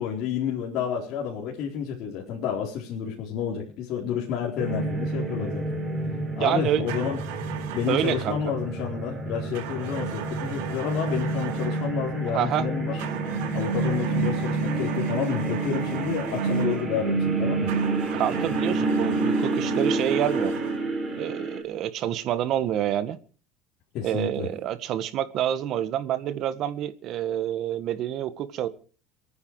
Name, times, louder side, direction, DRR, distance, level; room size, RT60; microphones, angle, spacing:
voice 1, 0.0-5.6 6.4-7.2 7.7-13.0 13.5-17.7 23.9-24.5, left 8 dB, 50° left, -3 dB, 4.3 m, -30 dB
sound 1, 4.6-21.6, right 3 dB, 15° right, 5.2 m, -28 dB
voice 2, 6.4-6.8 7.9-8.4 12.3-12.7 18.1-20.5 21.2-23.2 24.0-28.7, right 11 dB, 45° right, 12 dB, 1.6 m, -27 dB
sound 2, 6.9-8.5 9.5-12.0 13.0-17.0 17.7-20.9, right 11 dB, 90° right, 3.8 m, -39 dB
28.5 x 9.7 x 4.9 m, 0.40 s
cardioid pair, 160°, 0 cm